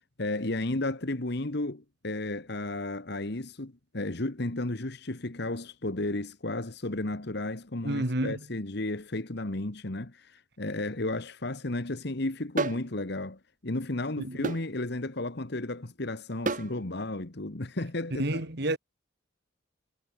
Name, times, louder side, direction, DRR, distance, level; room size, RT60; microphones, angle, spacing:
voice 1, 0.2-18.4, left 2 dB, 55° left, 1.5 m, -33 dB
voice 2, 7.8-8.4 14.2-14.5 18.1-18.8, right 1 dB, 55° right, 2.3 m, -30 dB
sound 1, 12.6-12.9 14.4-14.7 16.5-16.7, right 3 dB, 40° right, 1.0 m, -29 dB
head